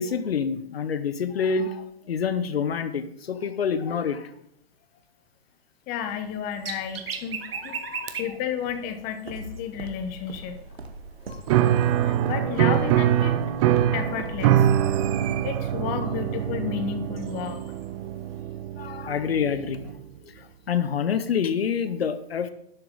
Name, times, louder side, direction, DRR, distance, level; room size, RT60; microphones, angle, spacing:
voice 1, 0.0-4.3 7.5-8.2 11.3-11.4 18.8-19.9 20.4-22.5, left 6 dB, 70° left, 11 dB, 0.9 m, -27 dB
voice 2, 5.9-7.8 8.2-10.6 12.0-13.4 13.9-14.7 15.4-17.7, left 8 dB, 25° left, 9 dB, 0.9 m, -32 dB
sound 1, 6.1-18.4, right 6 dB, 65° right, 1.4 m, -42 dB
Walk footsteps, 8.7-16.5, right 1 dB, 85° right, 1.3 m, -40 dB
Piano, 11.5-20.0, right 11 dB, 35° right, 0.6 m, -24 dB
11.5 x 7.0 x 3.9 m, 0.77 s
figure-of-eight pair, 120°, 31 cm